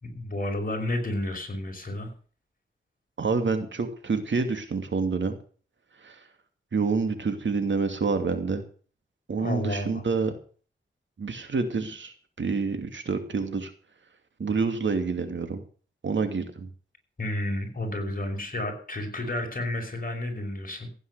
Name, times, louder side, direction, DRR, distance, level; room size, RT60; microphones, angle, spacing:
voice 1, 0.0-2.1 9.4-10.0 17.2-20.9, left 1 dB, 45° left, 3 dB, 5.4 m, -31 dB
voice 2, 3.2-5.4 6.0-6.2 6.7-8.6 9.3-10.3 11.2-13.7 14.4-15.6 16.0-16.7, right 4 dB, 70° right, 7 dB, 2.6 m, -27 dB
15.5 x 9.4 x 6.8 m, 0.42 s
wide cardioid pair, 75°, 20 cm